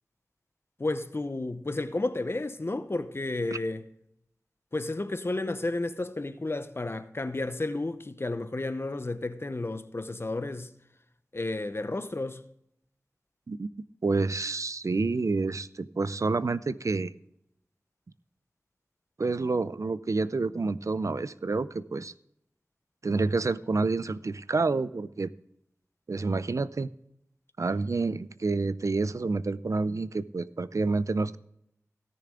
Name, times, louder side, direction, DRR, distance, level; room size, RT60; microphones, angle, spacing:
voice 1, 0.8-3.8 4.7-10.7 11.3-12.4, left 2 dB, 45° left, 0.8 m, -32 dB
voice 2, 14.0-17.1 19.2-22.1 23.0-25.3 26.1-26.9 27.6-31.4, right 3 dB, 65° right, 0.5 m, -28 dB
17.0 x 6.8 x 3.7 m
wide cardioid pair, 50°, 6 cm